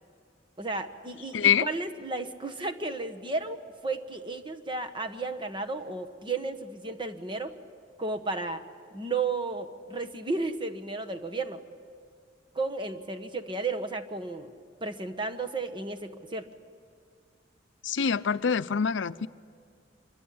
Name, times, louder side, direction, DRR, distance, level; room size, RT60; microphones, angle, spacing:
voice 1, 0.6-7.5 8.0-8.6 8.9-11.6 12.5-14.5 14.8-16.5, right 3 dB, 25° right, 8 dB, 1.4 m, -33 dB
voice 2, 1.3-1.7 17.8-19.3, left 7 dB, 80° left, 14 dB, 0.6 m, -25 dB
26.0 x 23.5 x 8.7 m, 2.2 s
head